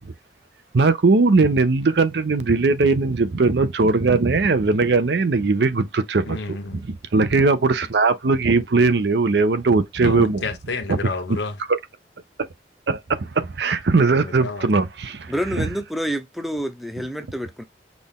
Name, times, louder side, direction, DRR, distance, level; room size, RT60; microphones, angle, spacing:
voice 1, 0.7-6.6 6.9-10.4 10.9-11.0 12.9-15.6, right 3 dB, 70° right, 0.6 m, -19 dB
voice 2, 6.2-6.8 10.0-11.6 14.1-14.7, left 3 dB, 90° left, 0.9 m, -30 dB
voice 3, 15.3-17.6, equal, ahead, 0.5 m, -28 dB
6.0 x 2.4 x 3.6 m
head